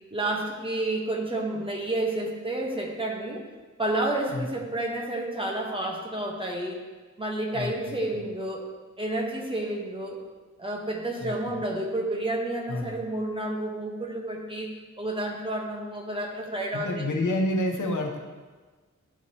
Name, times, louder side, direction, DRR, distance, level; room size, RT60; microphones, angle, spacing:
voice 1, 0.1-3.4 3.8-6.8 7.2-8.7 9.0-10.2 10.6-17.1, right 1 dB, 20° right, -1 dB, 0.9 m, -30 dB
voice 2, 7.5-8.0 11.2-11.6 12.7-13.0 16.7-18.2, left 1 dB, 80° left, 1 dB, 1.1 m, -29 dB
11.0 x 4.7 x 2.8 m, 1.3 s
wide cardioid pair, 165°, 30 cm